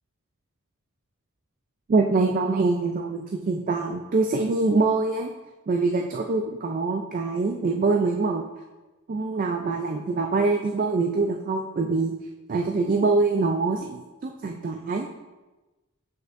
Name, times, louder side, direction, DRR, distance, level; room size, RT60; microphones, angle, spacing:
voice 1, 1.9-5.3 5.7-8.4 9.1-12.1 12.5-15.1, right 3 dB, 40° right, 3 dB, 0.3 m, -24 dB
8.0 x 5.2 x 2.5 m, 1.1 s
head